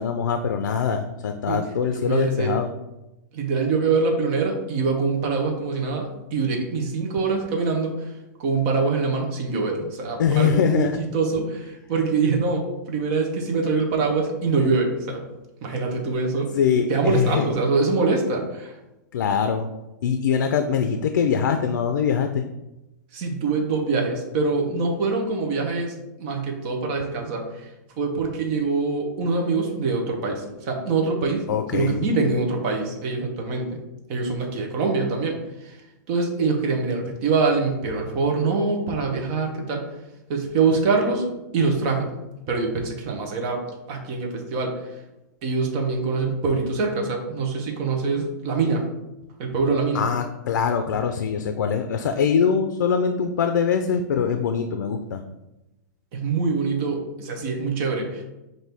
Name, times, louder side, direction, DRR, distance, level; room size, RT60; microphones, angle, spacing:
voice 1, 0.0-2.7 10.2-11.0 16.5-17.4 19.1-19.7 20.0-22.5 31.5-32.1 49.9-55.2, left 7 dB, 85° left, 7 dB, 0.4 m, -23 dB
voice 2, 2.0-2.6 3.3-8.1 8.4-10.9 11.1-15.3 15.6-16.6 16.9-18.7 23.1-27.7 28.0-31.5 31.7-33.7 34.1-35.8 36.1-39.9 40.3-41.3 41.5-42.1 42.5-44.8 45.4-48.9 49.4-50.0 56.1-58.2, right 4 dB, 30° right, 1 dB, 0.7 m, -24 dB
5.8 x 2.6 x 3.4 m, 0.97 s
supercardioid pair, 170°, 10 cm